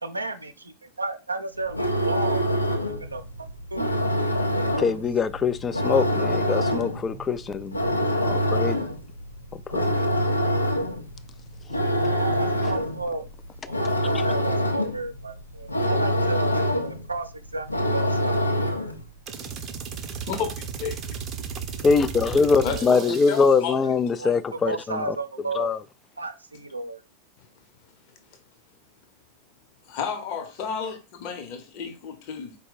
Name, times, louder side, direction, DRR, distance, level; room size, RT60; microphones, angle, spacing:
voice 1, 0.0-2.4 2.9-3.9 4.4-4.8 12.0-13.3 13.6-18.5 23.0-23.2 23.5-23.6 24.2-25.7 26.2-27.0, right 3 dB, 80° right, 0.5 m, -33 dB
sound 1, 1.6-19.1, equal, 85° left, 0.5 m, -26 dB
voice 2, 4.8-7.9 8.2-8.8 9.7-9.9 21.8-25.2 25.5-25.8, left 5 dB, 20° left, 0.3 m, -23 dB
sound 2, 19.3-23.7, right 7 dB, 30° right, 0.6 m, -35 dB
voice 3, 20.2-21.2 22.6-23.8 24.2-24.3 29.9-32.6, left 6 dB, 45° left, 0.9 m, -32 dB
4.4 x 2.2 x 4.0 m
figure-of-eight pair, 90°, 0 cm